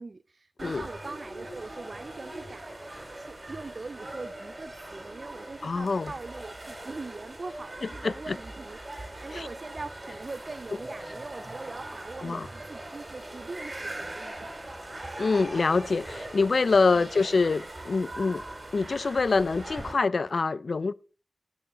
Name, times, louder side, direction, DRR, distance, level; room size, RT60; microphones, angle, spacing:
voice 1, 0.0-2.7 3.1-8.8 9.2-14.5 17.0-17.1, right 3 dB, 65° right, 0.3 m, -42 dB
sound 1, 0.6-19.9, right 1 dB, 40° right, 2.5 m, -41 dB
voice 2, 5.6-6.1 7.8-8.4 9.3-9.5 12.2-12.5 15.2-18.4 18.7-20.9, left 4 dB, 80° left, 0.4 m, -25 dB
12.0 x 6.2 x 4.0 m
cardioid pair, 50°, 0 cm